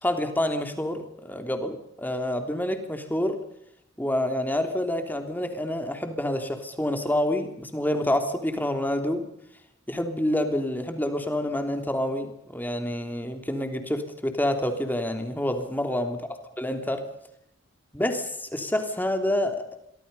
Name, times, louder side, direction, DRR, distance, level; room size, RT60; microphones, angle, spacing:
voice 1, 0.0-3.4 4.0-9.3 9.9-16.2 16.6-17.1 17.9-19.7, left 1 dB, 10° left, 7 dB, 3.2 m, -28 dB
28.0 x 24.0 x 5.6 m, 0.77 s
head